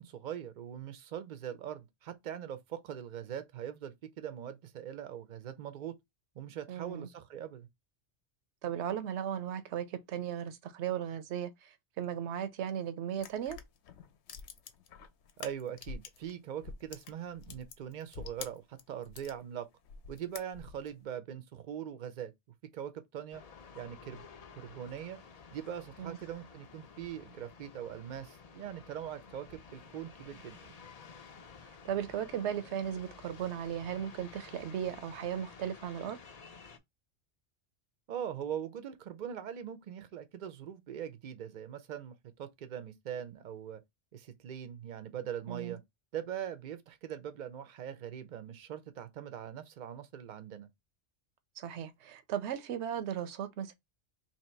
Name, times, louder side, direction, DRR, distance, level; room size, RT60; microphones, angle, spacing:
voice 1, 0.0-5.9 6.4-7.7 15.4-19.7 20.1-22.3 22.7-23.4 23.7-24.3 24.6-25.2 25.5-30.7 38.1-42.1 42.4-43.8 44.1-45.8 46.1-50.7, right 9 dB, 50° right, 0.6 m, -42 dB
voice 2, 6.7-7.1 8.6-13.6 26.0-26.2 31.8-36.2 45.5-45.8 51.6-53.7, right 9 dB, 70° right, 0.9 m, -36 dB
sound 1, 13.2-16.3 16.6-19.4 19.8-20.9, left 6 dB, 65° left, 0.9 m, -47 dB
sound 2, 23.3-36.8, left 5 dB, 45° left, 0.5 m, -53 dB
2.9 x 2.8 x 4.3 m
omnidirectional pair, 1.3 m